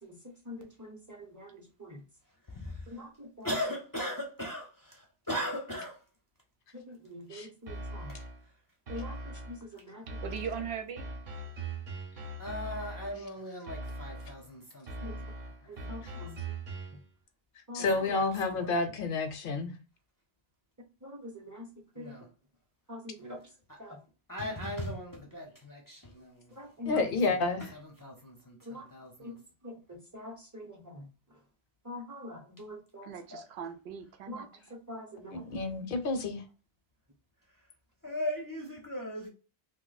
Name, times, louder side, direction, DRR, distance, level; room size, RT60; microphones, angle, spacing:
voice 1, 0.0-2.0 2.9-3.6 6.7-8.1 8.9-10.5 15.0-15.2 15.7-16.5 17.7-18.1 21.0-22.3 22.9-23.5 23.8-24.0 26.5-27.3 28.6-28.9 29.2-29.4 29.6-31.4 31.8-33.4 34.3-35.3, left 1 dB, 20° right, 0.5 m, -45 dB
voice 2, 2.5-2.9 3.4-6.0 8.1-8.2 12.4-15.3 15.6-16.3 17.9-18.7 22.0-22.2 24.3-26.6 26.9-29.4 38.0-39.3, equal, 25° left, 0.5 m, -39 dB
sound 1, 7.7-8.5 8.9-9.7 10.1-13.3 13.7-14.5 14.9-17.1, right 2 dB, 50° right, 0.8 m, -41 dB
voice 3, 10.2-11.1 33.1-34.5, right 7 dB, 90° right, 0.8 m, -39 dB
voice 4, 17.7-19.7 26.9-27.7 35.3-36.4, left 3 dB, 65° left, 0.7 m, -30 dB
2.7 x 2.1 x 3.9 m
omnidirectional pair, 1.1 m